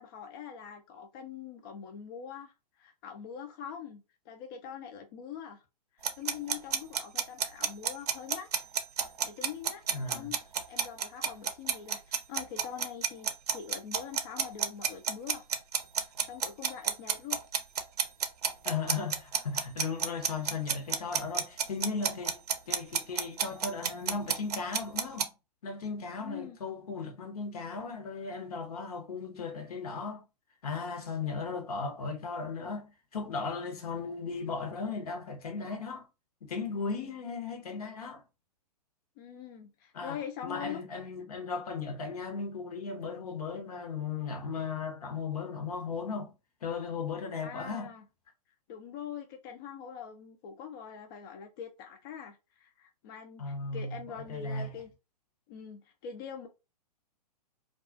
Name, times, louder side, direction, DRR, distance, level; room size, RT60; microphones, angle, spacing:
voice 1, 0.0-5.6 5.9-8.7 9.2-15.5 16.0-17.4 26.2-26.6 39.2-40.8 47.4-48.1 48.7-54.9 55.5-56.5, left 8 dB, 35° left, 0.4 m, -44 dB
sound 1, 6.0-25.2, right 7 dB, 70° right, 0.5 m, -30 dB
voice 2, 9.9-10.4 18.6-22.4 22.7-25.3 25.6-30.2 30.6-36.1 36.4-38.2 39.9-46.3 46.6-47.9 53.4-54.0 54.3-54.7, left 4 dB, 65° left, 0.8 m, -36 dB
2.3 x 2.3 x 2.4 m
figure-of-eight pair, 115°, 21 cm